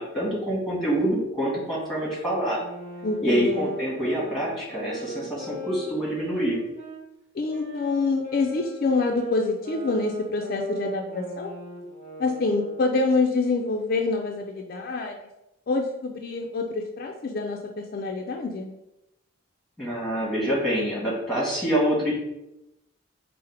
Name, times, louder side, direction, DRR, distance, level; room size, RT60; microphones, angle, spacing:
voice 1, 0.0-2.6 3.2-6.6 19.8-22.1, equal, ahead, -5 dB, 1.4 m, -26 dB
sound 1, 1.8-7.0 7.5-13.1, equal, 35° right, 1.3 m, -38 dB
voice 2, 3.0-3.7 7.3-11.5 12.2-15.2 15.7-18.7, left 3 dB, 50° left, 2 dB, 0.4 m, -26 dB
4.8 x 2.0 x 4.5 m, 0.90 s
head